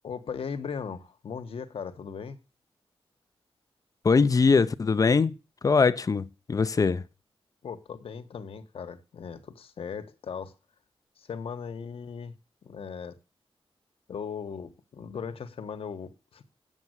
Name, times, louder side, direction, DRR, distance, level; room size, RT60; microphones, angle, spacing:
voice 1, 0.0-2.4 7.6-10.5 11.2-12.3 12.6-13.2 14.1-16.6, left 6 dB, 65° left, 1.3 m, -38 dB
voice 2, 4.0-5.3 5.6-7.0, left 4 dB, 35° left, 0.6 m, -22 dB
8.6 x 7.3 x 8.0 m
wide cardioid pair, 130°, 10 cm